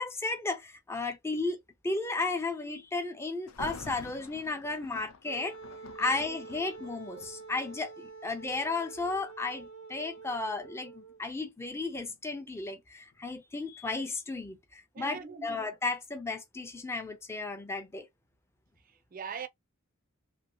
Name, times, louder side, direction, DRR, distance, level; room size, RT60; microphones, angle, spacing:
voice 1, 0.0-5.6 6.0-18.1, left 3 dB, 10° left, 0.5 m, -34 dB
Thunder, 3.5-8.4 9.1-9.3 10.0-12.8 13.1-13.2, left 4 dB, 85° left, 0.6 m, -49 dB
Wind instrument woodwind instrument, 5.2-11.2, right 4 dB, 65° left, 1.0 m, -47 dB
voice 2, 6.0-6.4 14.9-15.7 19.1-19.5, right 6 dB, 40° right, 0.4 m, -41 dB
2.8 x 2.7 x 2.7 m
head